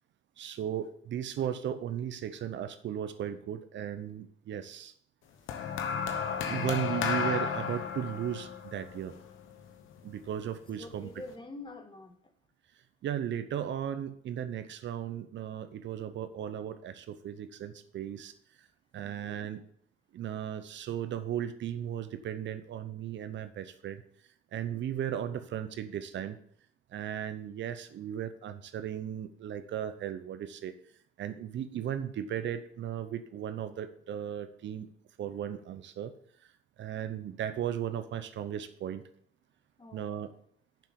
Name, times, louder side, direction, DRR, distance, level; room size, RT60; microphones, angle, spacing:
voice 1, 0.4-4.9 6.5-9.2 10.0-11.1 13.0-18.3 18.9-19.6 20.1-24.0 24.5-26.4 26.9-30.7 31.2-34.9 35.2-36.1 36.8-39.0 39.9-40.3, right 10 dB, 65° right, 11 dB, 0.8 m, -36 dB
sound 1, 5.5-9.9 10.8-11.1, left 6 dB, 85° left, 1.2 m, -33 dB
voice 2, 10.8-12.1 19.0-19.6 39.8-40.3, left 2 dB, 25° left, 5 dB, 1.6 m, -46 dB
7.2 x 5.9 x 6.9 m, 0.64 s
cardioid pair, 90°, 20 cm